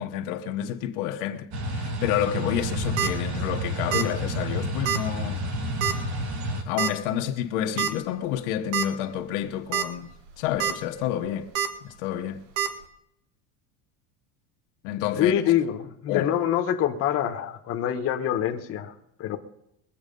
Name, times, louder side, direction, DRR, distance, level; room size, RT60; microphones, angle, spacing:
voice 1, 0.0-5.7 6.6-11.5 11.8-12.5 14.8-15.5 16.1-16.3, left 11 dB, 70° left, 1.4 m, -29 dB
sound 1, 1.5-6.6, equal, 45° right, 2.0 m, -30 dB
sound 2, 2.6-3.1 3.9-4.2 4.4-4.5 4.9-5.0 5.8-6.1 6.8-6.9 7.8-7.9 8.4-8.5 8.7-8.9 9.5-9.8 10.3-10.7 11.5-11.7 12.6-12.7, right 9 dB, 70° right, 2.0 m, -26 dB
voice 2, 15.2-18.9 19.2-19.4, left 10 dB, 35° left, 1.3 m, -25 dB
22.5 x 8.0 x 5.3 m
cardioid pair, 165°, 39 cm